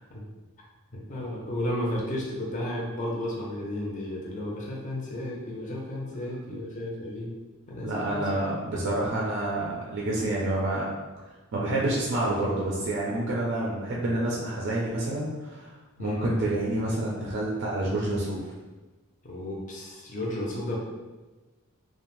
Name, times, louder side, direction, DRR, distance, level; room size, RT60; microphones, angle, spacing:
voice 1, 1.1-7.3 7.7-8.4 16.0-16.3 19.2-20.8, left 1 dB, 35° left, -3 dB, 0.5 m, -33 dB
voice 2, 7.8-10.9 11.5-15.7 16.0-18.4, right 1 dB, 50° right, -4 dB, 0.4 m, -28 dB
2.5 x 2.1 x 3.0 m, 1.2 s
head